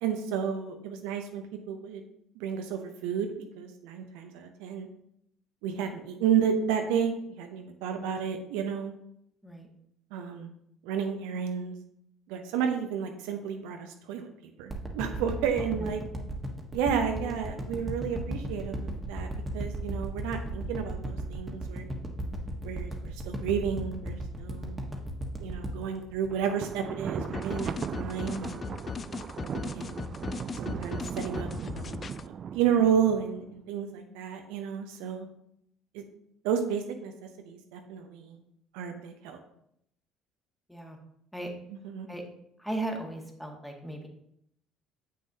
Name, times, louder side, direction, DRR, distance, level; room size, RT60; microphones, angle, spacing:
voice 1, 0.0-2.0 2.4-3.3 3.6-4.9 5.6-8.9 10.1-10.5 10.8-11.7 12.3-14.3 14.6-16.0 16.7-19.3 19.5-21.9 22.6-24.8 25.4-28.7 29.7-30.1 30.6-32.0 32.5-35.3 35.9-36.0 36.4-38.4 38.7-39.4 41.8-42.1, right 8 dB, 70° right, 5 dB, 0.7 m, -31 dB
sound 1, 14.7-27.0 27.4-27.5, right 1 dB, 20° right, 1.4 m, -35 dB
Thunder, 26.3-33.6, right 7 dB, 45° right, 0.3 m, -38 dB
sound 2, 27.2-32.3, left 5 dB, 35° left, 0.3 m, -38 dB
voice 2, 42.6-44.1, right 2 dB, 5° left, 1 dB, 1.7 m, -37 dB
7.8 x 6.4 x 2.8 m, 0.74 s
figure-of-eight pair, 55°, 0 cm